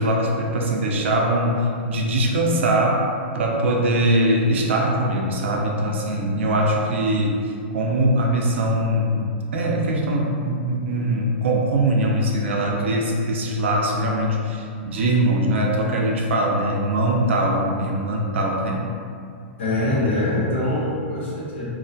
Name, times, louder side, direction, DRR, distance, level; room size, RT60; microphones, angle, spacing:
voice 1, 0.0-18.8, right 1 dB, 80° right, 0 dB, 0.4 m, -22 dB
voice 2, 19.6-21.7, left 1 dB, 85° left, -6 dB, 0.8 m, -23 dB
2.3 x 2.1 x 2.6 m, 2.3 s
hypercardioid pair, 155°, 6 cm